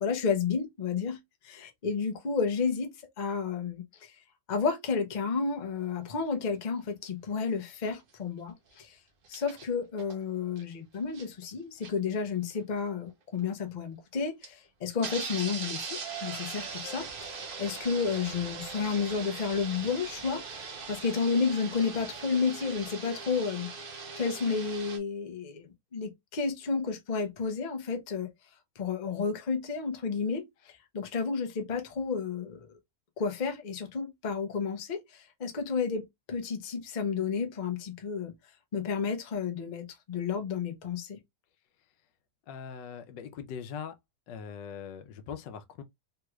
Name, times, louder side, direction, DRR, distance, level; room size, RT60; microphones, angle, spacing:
voice 1, 0.0-1.2 1.4-2.9 3.2-3.8 4.5-8.9 9.3-23.7 24.2-25.7 25.9-28.3 28.8-30.5 30.9-32.7 33.2-38.3 38.7-41.2, left 5 dB, 45° left, 0.5 m, -31 dB
sound 1, 6.3-6.4 9.2-9.7 10.0-10.2 10.6-10.7 11.0-11.4 11.8-11.9 12.6-12.7 13.4-13.5 14.4-14.5 15.0-25.0, right 5 dB, 55° right, 0.6 m, -40 dB
voice 2, 42.5-43.9 44.3-45.8, left 7 dB, 90° left, 1.3 m, -41 dB
3.5 x 3.0 x 2.3 m
omnidirectional pair, 1.9 m